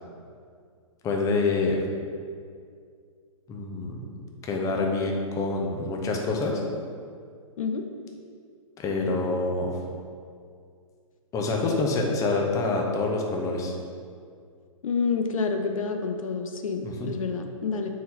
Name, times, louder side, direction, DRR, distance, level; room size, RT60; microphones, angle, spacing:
voice 1, 1.0-1.8 3.5-4.0 4.4-6.6 8.8-9.8 11.3-13.7 16.8-17.1, left 3 dB, 20° left, 0 dB, 0.7 m, -26 dB
voice 2, 14.8-17.9, left 5 dB, 70° left, 5 dB, 0.6 m, -28 dB
4.2 x 4.1 x 5.6 m, 2.2 s
hypercardioid pair, 125°, 18 cm